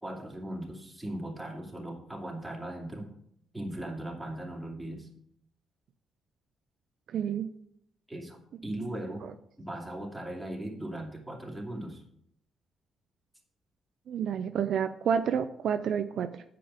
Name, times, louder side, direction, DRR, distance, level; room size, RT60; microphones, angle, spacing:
voice 1, 0.0-3.1 3.5-5.1 8.1-9.3 9.6-12.0, right 1 dB, 5° right, -1 dB, 2.7 m, -38 dB
voice 2, 7.1-7.5 14.1-16.4, right 7 dB, 65° right, 9 dB, 0.5 m, -29 dB
7.7 x 5.2 x 6.9 m, 0.71 s
cardioid pair, 90°, 0 cm